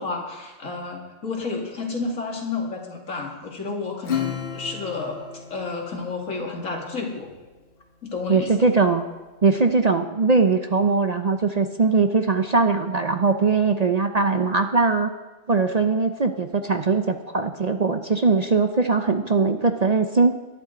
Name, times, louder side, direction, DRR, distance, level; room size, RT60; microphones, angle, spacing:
voice 1, 0.0-5.2 5.5-7.3 8.0-8.7, left 4 dB, 90° left, 0 dB, 2.6 m, -31 dB
Acoustic guitar / Strum, 4.0-7.0, left 8 dB, 50° left, 1.1 m, -32 dB
voice 2, 8.3-9.0 9.4-15.1 15.5-20.3, right 4 dB, 40° right, 7 dB, 0.6 m, -20 dB
21.0 x 11.0 x 3.9 m, 1.2 s
omnidirectional pair, 1.3 m